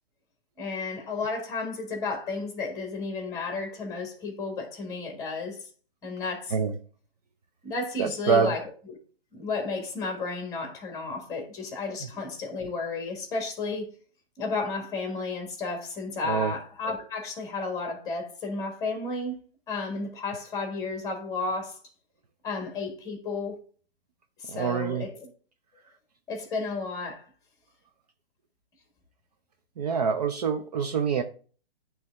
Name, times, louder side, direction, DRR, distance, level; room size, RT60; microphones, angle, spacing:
voice 1, 0.6-5.6 6.0-6.5 7.6-8.6 9.3-13.9 14.4-19.4 19.7-21.8 22.4-23.6 24.4-25.3 26.3-27.2, left 3 dB, 10° left, 1.5 m, -32 dB
voice 2, 8.0-8.6 11.9-12.1 16.2-16.5 24.5-25.1 29.8-31.2, right 6 dB, 40° right, 0.5 m, -26 dB
9.2 x 3.4 x 3.5 m
hypercardioid pair, 150°, 31 cm